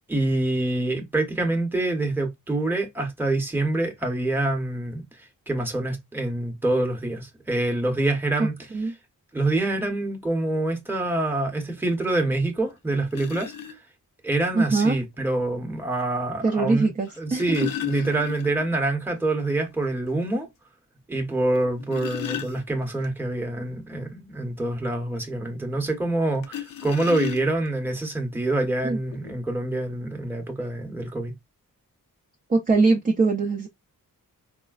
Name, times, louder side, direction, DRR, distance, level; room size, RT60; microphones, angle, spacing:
voice 1, 0.1-5.0 5.5-8.5 9.3-13.5 14.2-16.9 17.2-20.5 21.1-31.3, right 2 dB, 5° right, 0.8 m, -26 dB
sound 1, 13.1-13.8 15.1-15.2 17.0-18.8 19.1-19.2 19.6-19.7 20.2-20.3 21.6-23.1 26.4-27.8 28.7-28.8 29.1-29.3, left 11 dB, 75° left, 0.6 m, -34 dB
voice 2, 14.5-15.0 16.4-17.6 28.8-29.0 32.5-33.7, right 3 dB, 25° right, 0.4 m, -22 dB
4.3 x 2.1 x 2.3 m
wide cardioid pair, 115°, 34 cm